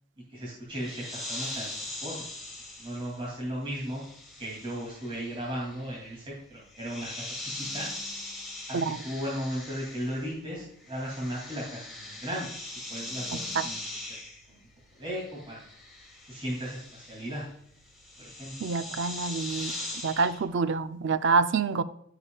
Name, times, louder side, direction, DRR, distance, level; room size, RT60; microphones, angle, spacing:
voice 1, 0.3-2.3 2.8-4.0 4.4-7.9 8.7-8.8 9.0-12.5 12.9-13.8 14.5-14.6 15.0-15.6 16.2-17.4 18.2-18.5, equal, 25° right, 2.7 m, -36 dB
sound 1, 0.7-10.4 10.7-20.4, left 2 dB, ahead, 2.6 m, -41 dB
voice 2, 13.3-13.7 18.6-19.7 20.0-21.8, right 4 dB, 60° right, 0.5 m, -27 dB
14.0 x 6.8 x 2.4 m
head